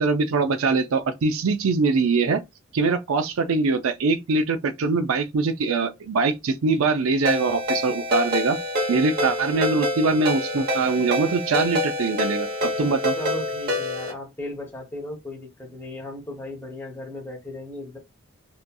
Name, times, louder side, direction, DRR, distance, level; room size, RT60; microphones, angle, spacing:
voice 1, 0.0-2.4 2.7-8.6 8.9-13.2, right 4 dB, 85° right, 0.5 m, -23 dB
Ringtone, 7.3-14.1, left 1 dB, 45° right, 0.9 m, -26 dB
voice 2, 13.2-18.0, left 1 dB, 10° left, 0.7 m, -36 dB
2.7 x 2.6 x 2.2 m
head